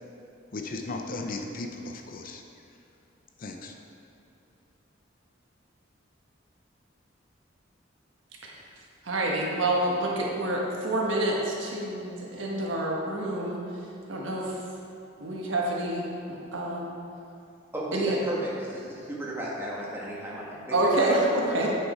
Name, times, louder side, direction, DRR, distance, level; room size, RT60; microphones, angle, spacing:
voice 1, 0.5-2.4 3.4-3.7, left 2 dB, 45° left, 3 dB, 0.6 m, -36 dB
voice 2, 9.0-13.6 14.1-14.5 15.2-17.0 17.9-18.2 20.7-21.7, right 1 dB, 75° right, -2 dB, 1.4 m, -28 dB
voice 3, 17.7-21.2 21.5-21.7, right 1 dB, 10° right, -6 dB, 1.6 m, -34 dB
9.8 x 5.5 x 4.5 m, 2.8 s
head